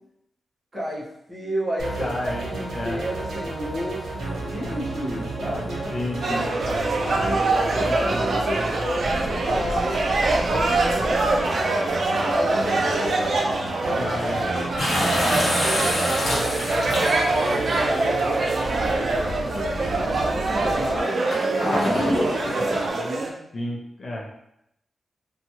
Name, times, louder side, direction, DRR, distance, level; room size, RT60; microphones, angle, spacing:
voice 1, 0.7-5.9 6.4-6.6 7.0-10.0 10.4-11.7 12.1-14.1 14.5-14.8 15.0-16.6 17.1-18.5 18.8-23.4, equal, 20° right, -6 dB, 0.8 m, -32 dB
sound 1, 1.8-21.0, right 2 dB, 90° right, 0.6 m, -32 dB
voice 2, 2.0-2.5 2.7-3.0 5.9-6.6 14.0-14.8 23.5-24.3, left 1 dB, 45° left, -3 dB, 0.6 m, -31 dB
sound 2, 6.2-23.3, right 2 dB, 50° right, 0.3 m, -24 dB
sound 3, 14.8-17.5 18.4-18.5 21.3-22.9, left 1 dB, 60° left, 1.0 m, -25 dB
2.8 x 2.3 x 2.8 m, 0.80 s
wide cardioid pair, 145°, 0 cm